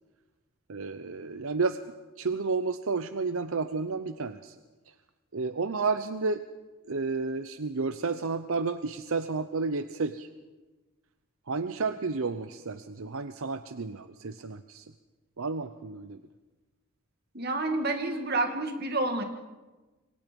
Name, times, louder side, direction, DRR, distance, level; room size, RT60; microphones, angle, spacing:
voice 1, 0.7-1.8 2.2-4.6 4.9-5.0 5.3-6.4 6.8-10.3 11.5-14.9 15.4-16.2, right 4 dB, 70° right, 11 dB, 0.7 m, -31 dB
voice 2, 17.3-19.2, right 2 dB, 45° right, 5 dB, 2.3 m, -29 dB
27.0 x 23.5 x 5.3 m, 1.2 s
head